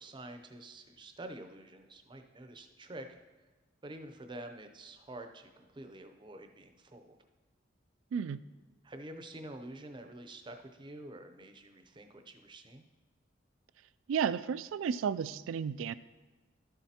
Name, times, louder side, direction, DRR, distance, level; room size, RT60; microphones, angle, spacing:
voice 1, 0.0-3.2 3.8-7.2 8.8-12.8, right 1 dB, 25° right, 6 dB, 0.5 m, -48 dB
voice 2, 14.1-15.9, right 7 dB, 80° right, 17 dB, 0.3 m, -32 dB
12.5 x 7.3 x 2.8 m, 1.2 s
head